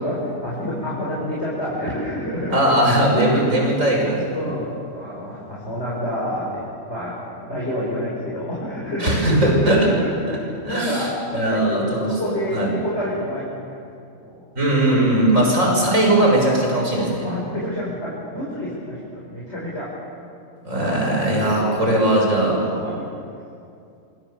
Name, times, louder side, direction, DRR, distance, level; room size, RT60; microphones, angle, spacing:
voice 1, 0.0-2.6 3.1-3.5 4.3-13.8 14.2-14.4 17.2-19.9 20.8-23.0, left 1 dB, 55° left, -7 dB, 5.9 m, -28 dB
voice 2, 2.5-4.4 9.0-9.8 10.3-10.4 10.7-12.7 14.5-17.3 20.6-22.6, right 1 dB, 75° right, -1 dB, 6.6 m, -19 dB
26.5 x 26.5 x 7.2 m, 2.5 s
omnidirectional pair, 1.4 m